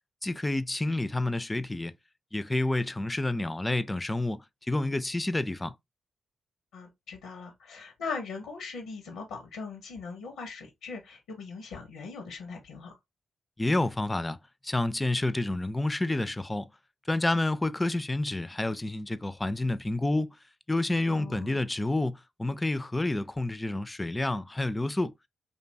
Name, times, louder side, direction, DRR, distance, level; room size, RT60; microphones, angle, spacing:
voice 1, 0.2-1.9 2.3-5.7 13.6-14.4 14.6-16.7 17.1-20.4 20.7-25.1, left 2 dB, 20° left, 0.3 m, -29 dB
voice 2, 6.7-13.0 21.1-21.6, left 4 dB, 85° left, 0.5 m, -40 dB
2.6 x 2.2 x 2.6 m
supercardioid pair, 45°, 0 cm